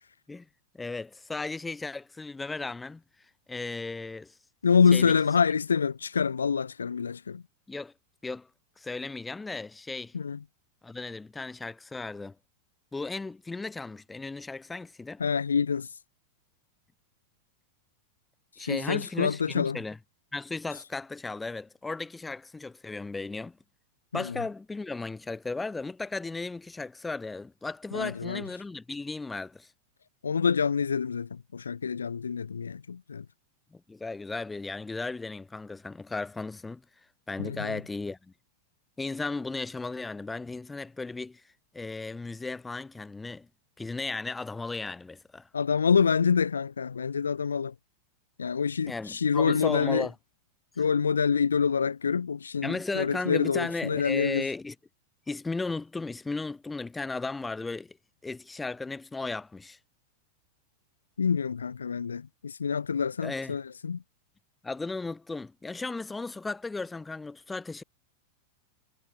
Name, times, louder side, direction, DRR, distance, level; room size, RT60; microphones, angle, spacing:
voice 1, 0.7-3.0 3.5-4.4 4.9-5.2 7.7-7.9 8.2-8.5 8.8-10.1 10.8-12.3 12.9-15.2 18.6-20.0 20.3-23.6 24.1-29.7 33.7-36.8 37.3-38.3 39.0-41.4 41.7-43.5 43.8-45.5 48.9-50.1 52.6-54.7 55.3-58.0 58.2-59.8 63.2-63.6 64.6-67.8, left 3 dB, 10° left, 6.2 m, -35 dB
voice 2, 4.6-7.4 10.1-10.4 15.2-15.9 18.6-19.8 24.1-24.4 27.9-28.4 30.2-33.2 37.4-37.8 45.5-47.7 48.4-50.1 50.8-54.5 61.2-64.0, left 6 dB, 70° left, 1.2 m, -26 dB
figure-of-eight pair, 90°, 0 cm